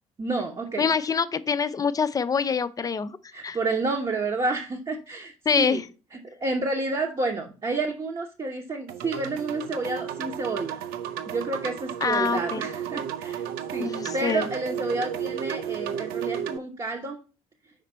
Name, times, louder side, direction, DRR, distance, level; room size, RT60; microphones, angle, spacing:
voice 1, 0.2-0.9 3.3-5.8 6.4-10.8 11.3-17.2, right 3 dB, 25° right, 1.0 m, -30 dB
voice 2, 0.8-3.1 3.4-3.6 5.5-5.8 12.0-12.6 13.8-14.5, left 6 dB, 20° left, 0.5 m, -25 dB
sound 1, 8.9-16.6, right 9 dB, 60° right, 0.6 m, -33 dB
5.1 x 5.0 x 4.4 m
figure-of-eight pair, 50°, 18 cm